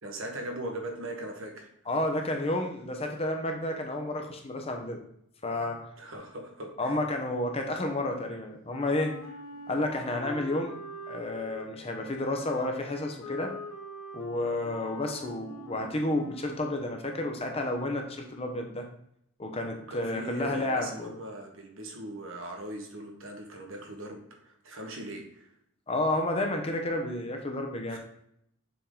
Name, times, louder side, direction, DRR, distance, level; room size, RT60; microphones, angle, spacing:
voice 1, 0.0-1.7 6.0-7.0 19.9-25.5 27.9-28.0, right 1 dB, 60° right, 2 dB, 1.2 m, -40 dB
voice 2, 1.9-5.0 5.4-5.8 6.8-9.1 9.7-10.8 11.1-13.5 14.1-18.8 19.4-21.1 25.9-28.0, left 1 dB, 25° left, 3 dB, 0.7 m, -31 dB
Wind instrument woodwind instrument, 8.7-16.8, left 1 dB, 80° left, 0.9 m, -44 dB
6.9 x 3.7 x 3.8 m, 0.73 s
head